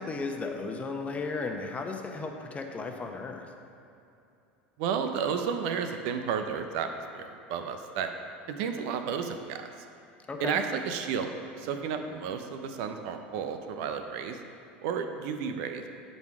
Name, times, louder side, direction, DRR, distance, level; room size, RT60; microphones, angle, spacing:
voice 1, 0.0-3.5 10.3-10.6, left 3 dB, 25° left, 3 dB, 1.0 m, -35 dB
voice 2, 4.8-8.1 8.5-9.7 10.4-14.4 14.8-15.8, right 6 dB, 65° right, 7 dB, 0.6 m, -32 dB
10.5 x 4.2 x 4.8 m, 2.7 s
hypercardioid pair, 85°, 6 cm